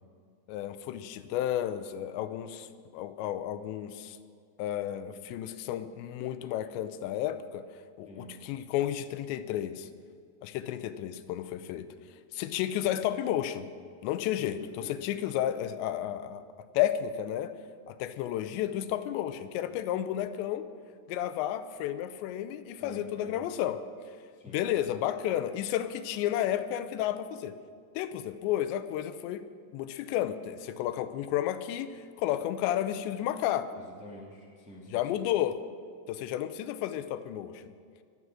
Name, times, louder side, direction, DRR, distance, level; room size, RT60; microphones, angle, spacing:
voice 1, 0.5-2.7 2.9-4.2 4.6-7.6 8.0-9.9 10.4-11.9 12.3-13.7 14.0-16.4 16.7-17.5 17.9-20.6 21.1-23.8 24.5-27.5 28.0-29.5 29.7-33.7 34.9-35.6 36.1-37.6, left 11 dB, 90° left, 11 dB, 2.9 m, -32 dB
voice 2, 14.6-15.0 22.8-23.4 24.3-24.9 33.7-35.2, equal, ahead, -4 dB, 1.7 m, -48 dB
23.5 x 8.3 x 6.3 m, 2.1 s
omnidirectional pair, 5.0 m